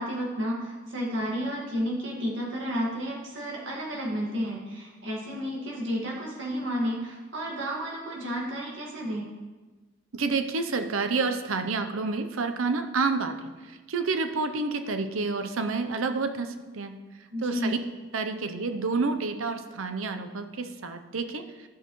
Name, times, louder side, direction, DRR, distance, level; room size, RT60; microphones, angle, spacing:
voice 1, 0.0-9.3 17.3-17.8, equal, 65° right, -3 dB, 1.9 m, -31 dB
voice 2, 10.1-13.3 13.7-16.9 17.4-17.8 18.1-21.4, right 4 dB, 85° right, 8 dB, 0.7 m, -29 dB
12.5 x 6.7 x 3.1 m, 1.2 s
head